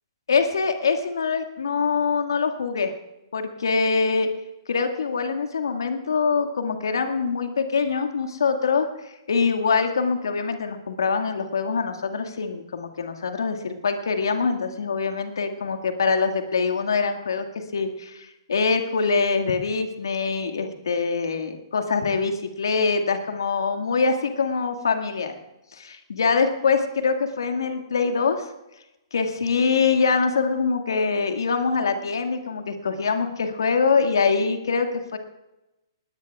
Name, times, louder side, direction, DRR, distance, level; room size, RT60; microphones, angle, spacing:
voice 1, 0.3-2.9 3.3-4.3 4.7-8.9 9.3-17.5 17.7-25.3 25.8-28.5 29.1-35.2, left 5 dB, 70° left, 6 dB, 2.0 m, -24 dB
20.0 x 17.5 x 2.4 m, 0.97 s
figure-of-eight pair, 120°, 2 cm